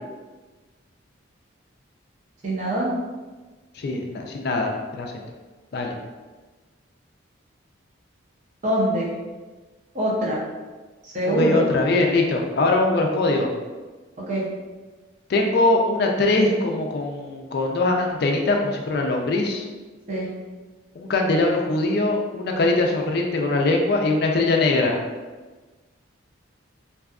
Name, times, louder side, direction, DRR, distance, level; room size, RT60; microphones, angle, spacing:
voice 1, 2.4-2.9 8.6-9.1 9.9-10.4 11.0-11.7 14.3-14.4 20.1-20.3, right 1 dB, 35° right, -5 dB, 0.6 m, -23 dB
voice 2, 3.8-5.2 5.7-5.9 11.2-13.5 15.3-19.6 21.0-25.0, left 2 dB, 50° left, 2 dB, 0.3 m, -22 dB
2.6 x 2.3 x 2.3 m, 1.3 s
head